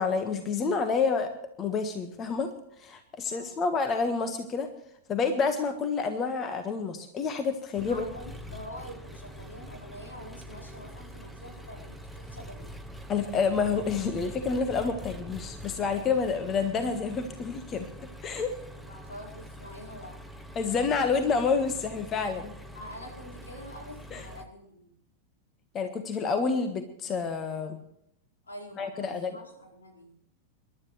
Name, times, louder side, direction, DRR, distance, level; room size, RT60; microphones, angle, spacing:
voice 1, 0.0-1.3 1.6-2.5 2.8-4.7 5.1-8.0 13.1-17.9 18.2-18.5 20.5-22.5 24.1-24.2 25.7-27.8 28.8-29.4, left 5 dB, 25° left, 7 dB, 1.5 m, -28 dB
voice 2, 3.2-3.6 7.9-12.9 18.7-20.2 22.7-24.9 28.4-30.2, equal, 75° left, -2 dB, 4.9 m, -46 dB
Engine, 7.8-24.5, equal, ahead, 1.4 m, -44 dB
27.5 x 12.0 x 3.3 m, 0.74 s
figure-of-eight pair, 90°, 0 cm